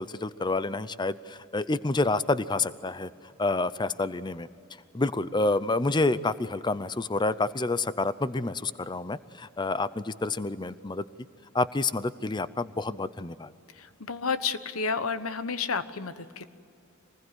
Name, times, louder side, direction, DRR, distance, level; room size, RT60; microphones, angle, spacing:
voice 1, 0.0-3.1 3.4-4.5 4.9-11.1 11.5-13.5, left 2 dB, 20° left, 15 dB, 0.6 m, -28 dB
voice 2, 13.7-16.4, left 5 dB, 90° left, 12 dB, 1.1 m, -31 dB
26.0 x 20.5 x 9.8 m, 2.6 s
head